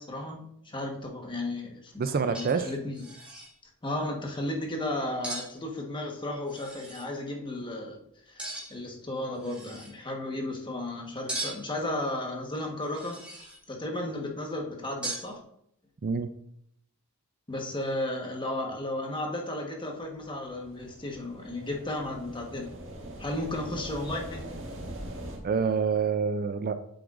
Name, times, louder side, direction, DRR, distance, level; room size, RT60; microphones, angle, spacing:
voice 1, 0.0-3.0 3.8-8.0 8.3-8.4 8.7-13.2 13.7-15.4 17.5-22.7 23.2-24.5, left 1 dB, 20° left, 1 dB, 1.3 m, -34 dB
sound 1, 1.9-2.0 2.3-2.7 2.9-3.5 5.2-5.5 6.5-7.1 8.4-8.9 9.3-9.9 11.3-11.8 12.8-13.6 15.0-15.3, right 1 dB, 5° right, 3.3 m, -38 dB
voice 2, 2.0-2.7 16.0-16.3 25.4-26.8, right 5 dB, 45° right, 10 dB, 0.4 m, -27 dB
sound 2, 20.1-25.4, right 1 dB, 60° right, 1.9 m, -42 dB
8.7 x 7.8 x 2.6 m, 0.71 s
head